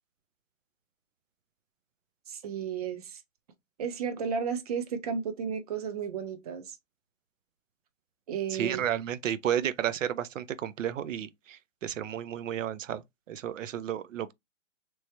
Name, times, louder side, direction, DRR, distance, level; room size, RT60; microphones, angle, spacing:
voice 1, 2.3-3.2 3.8-6.8 8.3-8.9, right 7 dB, 30° right, 0.6 m, -33 dB
voice 2, 8.5-13.0 13.3-14.3, right 10 dB, 70° right, 0.6 m, -32 dB
3.2 x 3.0 x 2.8 m
hypercardioid pair, 150°, 39 cm